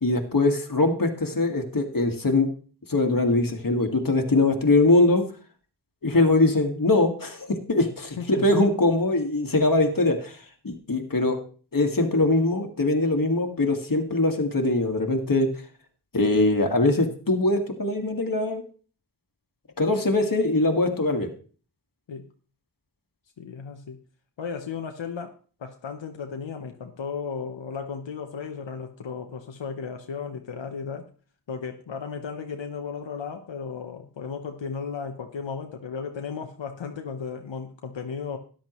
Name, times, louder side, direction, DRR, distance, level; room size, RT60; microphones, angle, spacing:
voice 1, 0.0-2.5 2.9-5.3 6.0-10.4 10.6-11.4 11.7-15.5 16.1-18.6 19.8-21.3, left 2 dB, 50° left, 4 dB, 1.8 m, -22 dB
voice 2, 8.2-8.5 22.1-22.3 23.4-24.0 24.4-25.3 25.6-31.1 31.5-38.4, left 6 dB, 85° left, 4 dB, 0.9 m, -35 dB
13.0 x 10.5 x 3.0 m, 0.40 s
wide cardioid pair, 55°, 43 cm